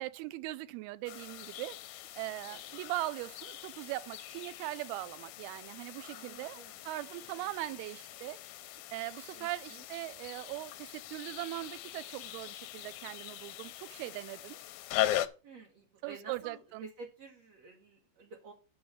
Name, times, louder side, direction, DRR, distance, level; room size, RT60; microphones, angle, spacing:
voice 1, 0.0-1.8 2.2-6.6 6.9-8.4 8.9-14.6 16.0-16.9, right 18 dB, 85° right, 2.5 m, -40 dB
sound 1, 1.1-15.3, left 14 dB, 80° left, 1.9 m, -41 dB
voice 2, 2.5-2.9 6.1-6.9 7.4-7.8 9.3-9.9 15.4-18.5, right 4 dB, 60° right, 1.9 m, -51 dB
10.0 x 4.0 x 7.0 m
omnidirectional pair, 4.4 m